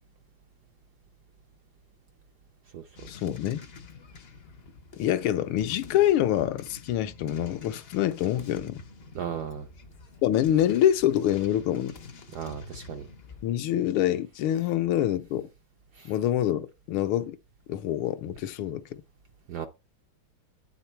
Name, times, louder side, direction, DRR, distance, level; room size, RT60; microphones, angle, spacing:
sound 1, 3.0-13.5, left 4 dB, 60° left, 0.6 m, -48 dB
voice 1, 3.1-3.6 5.0-8.8 10.2-12.0 13.4-15.5 16.0-17.4 17.7-19.0, left 11 dB, 80° left, 1.5 m, -26 dB
voice 2, 9.1-9.7 12.3-13.0 16.0-16.1 19.5-19.7, right 8 dB, 70° right, 0.9 m, -35 dB
9.2 x 3.8 x 4.4 m
omnidirectional pair, 2.3 m